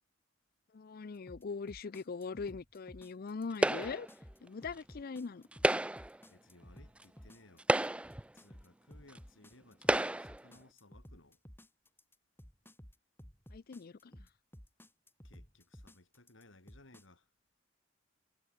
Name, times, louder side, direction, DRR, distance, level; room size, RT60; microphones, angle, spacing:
voice 1, 0.7-4.1 4.4-5.4 13.5-14.1, left 4 dB, 50° left, 0.5 m, -41 dB
sound 1, 1.3-17.0, equal, 10° left, 6.9 m, -54 dB
sound 2, 3.6-4.1 5.5-6.2 7.0-7.1 7.6-8.3 9.1-9.2 9.8-10.4, right 1 dB, 5° right, 0.4 m, -30 dB
voice 2, 6.3-7.7 8.3-11.4 15.2-17.3, left 2 dB, 80° left, 3.4 m, -61 dB
head